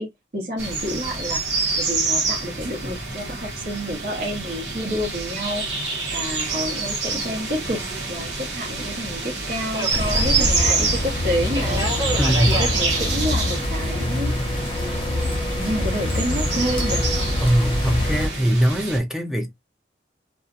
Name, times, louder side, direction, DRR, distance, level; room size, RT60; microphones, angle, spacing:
voice 1, 0.0-1.4 1.8-5.6 6.1-11.9 12.5-14.4 14.8-17.1, equal, 50° right, 1.1 m, -29 dB
sound 1, 0.6-19.0, right 4 dB, 85° right, 1.0 m, -27 dB
Subway metro underground, 5.6-18.4, equal, 25° right, 1.0 m, -35 dB
sound 2, 9.9-18.3, left 1 dB, 30° left, 0.7 m, -25 dB
voice 2, 12.2-12.7 17.4-19.5, right 1 dB, 5° right, 0.5 m, -21 dB
2.6 x 2.3 x 2.4 m
head